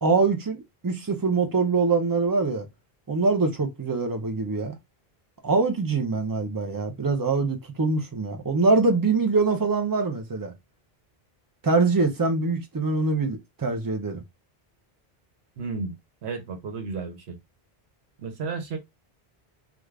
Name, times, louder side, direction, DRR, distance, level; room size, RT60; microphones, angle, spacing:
voice 1, 0.0-2.7 3.1-4.7 5.4-10.5 11.6-14.2, right 3 dB, 30° right, 0.4 m, -24 dB
voice 2, 15.6-15.9 16.2-17.4 18.2-18.8, right 4 dB, 85° right, 1.0 m, -32 dB
2.4 x 2.4 x 3.1 m
omnidirectional pair, 1.1 m